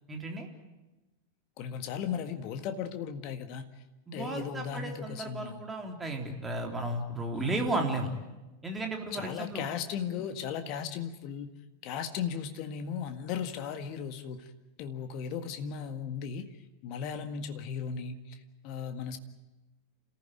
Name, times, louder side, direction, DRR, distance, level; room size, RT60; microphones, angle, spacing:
voice 1, 0.1-0.5 4.1-8.1 8.6-9.6, right 2 dB, 15° right, 2 dB, 3.6 m, -34 dB
voice 2, 1.6-3.7 4.1-5.7 7.3-7.8 9.1-11.5 11.8-14.5 14.8-16.6 16.8-19.2, left 7 dB, 40° left, 8 dB, 1.7 m, -36 dB
28.0 x 15.0 x 9.2 m, 1.1 s
figure-of-eight pair, 90°, 0 cm